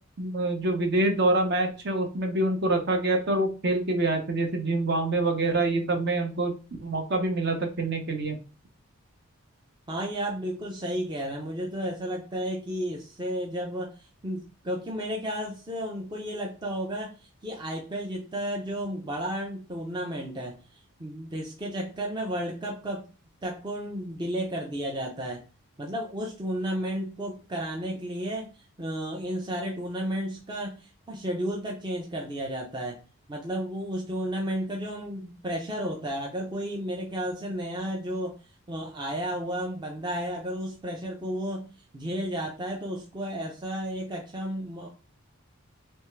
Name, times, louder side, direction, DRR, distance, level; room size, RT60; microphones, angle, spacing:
voice 1, 0.2-6.5 6.8-8.4, right 2 dB, 50° right, 4 dB, 0.8 m, -26 dB
voice 2, 9.9-23.1 23.4-25.4 25.8-33.0 33.3-38.4 38.7-41.6 41.9-44.9, equal, 20° right, 0 dB, 0.5 m, -33 dB
3.5 x 3.3 x 3.1 m, 0.34 s
head